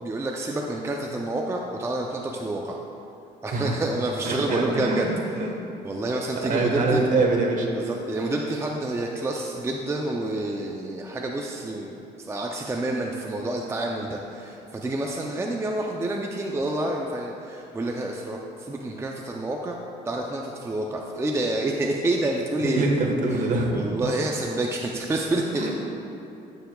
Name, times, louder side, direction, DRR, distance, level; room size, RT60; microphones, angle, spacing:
voice 1, 0.0-2.8 3.4-5.1 5.5-5.6 5.8-7.1 7.7-19.8 20.1-22.9 23.3-25.7, right 2 dB, 15° right, 0 dB, 0.5 m, -28 dB
voice 2, 4.3-5.5 6.4-7.7 22.6-23.8 25.5-25.7, right 3 dB, 50° right, 1 dB, 1.4 m, -24 dB
13.0 x 6.9 x 2.3 m, 2.7 s
cardioid pair, 110°, 17 cm